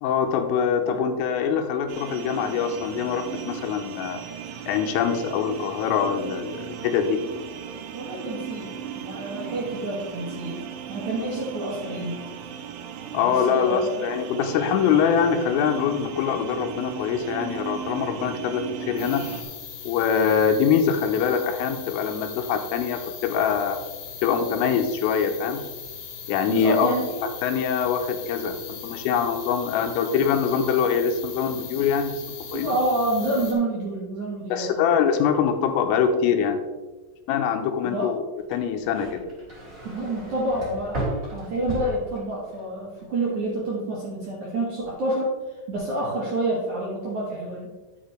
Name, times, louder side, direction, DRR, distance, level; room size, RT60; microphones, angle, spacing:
voice 1, 0.0-4.2 4.7-7.2 13.1-19.2 19.9-23.8 24.2-25.6 26.3-26.9 27.4-32.2 32.5-32.8 34.5-36.6 37.3-38.2 38.5-39.2, left 7 dB, 90° left, 6 dB, 3.4 m, -24 dB
sound 1, 1.9-19.4, right 8 dB, 80° right, 3.1 m, -36 dB
voice 2, 7.9-10.6 10.9-12.2 13.2-14.1 26.5-27.3 32.5-34.9 37.8-38.2 39.8-41.0 41.3-45.4 45.7-47.7, right 1 dB, 60° right, -5 dB, 2.1 m, -28 dB
sound 2, 19.0-33.5, left 7 dB, 60° left, 2.6 m, -39 dB
sound 3, 38.4-42.7 43.0-43.5, right 1 dB, 20° right, 2.4 m, -35 dB
10.5 x 8.2 x 3.3 m, 1.2 s
omnidirectional pair, 5.8 m